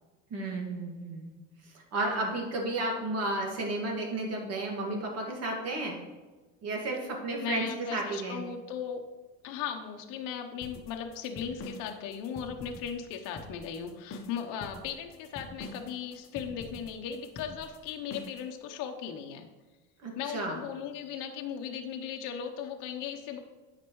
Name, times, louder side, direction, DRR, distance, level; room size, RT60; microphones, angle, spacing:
voice 1, 0.3-1.3 1.9-6.0 6.6-8.4 20.0-20.6, right 2 dB, 45° right, 0 dB, 2.1 m, -32 dB
voice 2, 7.4-9.0 9.4-19.5 20.1-23.4, left 8 dB, 65° left, 4 dB, 0.9 m, -37 dB
sound 1, 10.6-18.5, left 2 dB, 40° left, 1.0 m, -45 dB
9.4 x 5.9 x 3.1 m, 1.3 s
cardioid pair, 130°, 35 cm